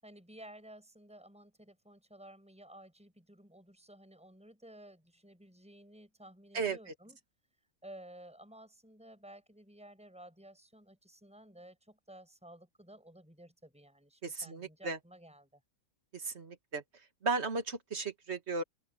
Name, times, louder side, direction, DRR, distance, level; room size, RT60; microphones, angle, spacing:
voice 1, 0.0-7.2 7.8-15.6, right 1 dB, 5° right, 6.6 m, -54 dB
voice 2, 14.2-15.0 16.1-16.8 17.2-18.6, right 4 dB, 50° right, 2.1 m, -35 dB
open air
omnidirectional pair, 1.5 m